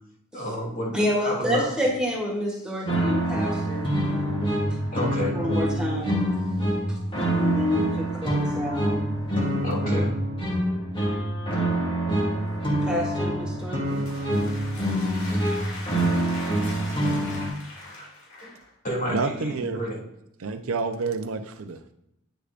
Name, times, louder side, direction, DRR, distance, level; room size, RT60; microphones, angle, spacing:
voice 1, 0.3-1.7 4.9-5.4 9.6-10.1 18.0-18.1 18.8-20.0, equal, 40° left, -4 dB, 3.0 m, -29 dB
voice 2, 0.9-4.4 5.3-6.2 7.4-8.9 12.8-14.1, equal, 5° right, -2 dB, 1.7 m, -28 dB
sound 1, 2.9-17.5, right 1 dB, 25° left, 1.7 m, -26 dB
sound 2, 13.6-18.7, left 2 dB, 85° left, 2.6 m, -41 dB
voice 3, 19.1-19.8 20.4-21.8, right 4 dB, 75° right, 8 dB, 0.6 m, -28 dB
9.2 x 6.7 x 2.5 m, 0.81 s
head